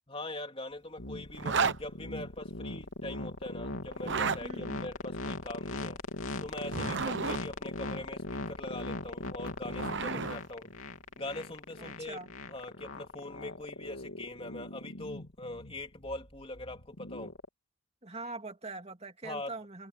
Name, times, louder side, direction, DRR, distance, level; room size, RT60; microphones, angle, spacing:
voice 1, 0.1-6.0 6.4-10.8 11.2-12.2 12.5-17.3 19.2-19.5, left 2 dB, 25° left, 3.3 m, -42 dB
sound 1, 1.0-17.5, left 2 dB, 70° left, 3.3 m, -39 dB
Zipper (clothing), 1.4-1.8 3.9-4.4 6.5-7.4 9.3-10.4, right 5 dB, 55° right, 0.9 m, -31 dB
voice 2, 4.4-4.9 6.8-7.2 10.2-10.4 11.8-12.3 18.0-19.9, right 2 dB, 30° right, 2.9 m, -43 dB
head